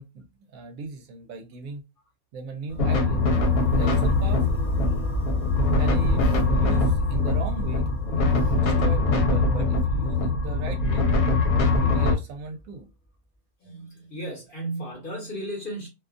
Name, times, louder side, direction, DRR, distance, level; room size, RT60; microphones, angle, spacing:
voice 1, 0.0-1.8 2.3-3.3 3.7-5.0 5.8-11.1 11.6-12.9, right 4 dB, 70° right, 0.9 m, -38 dB
sound 1, 2.7-12.6, equal, 5° left, 0.5 m, -34 dB
sound 2, 2.8-12.1, left 3 dB, 80° left, 1.1 m, -22 dB
voice 2, 13.6-15.9, right 1 dB, 40° left, 1.0 m, -34 dB
2.6 x 2.3 x 2.4 m
omnidirectional pair, 1.5 m